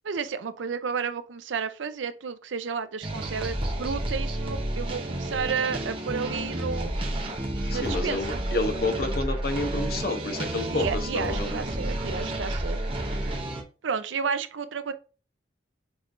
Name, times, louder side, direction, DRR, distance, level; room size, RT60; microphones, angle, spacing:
voice 1, 0.0-6.9 7.7-8.4 10.7-12.8 13.8-14.9, right 6 dB, 85° right, 0.5 m, -32 dB
sound 1, 3.0-13.6, right 1 dB, 30° right, 0.8 m, -31 dB
voice 2, 7.7-11.6, left 2 dB, 50° left, 0.9 m, -29 dB
6.2 x 3.2 x 2.5 m
head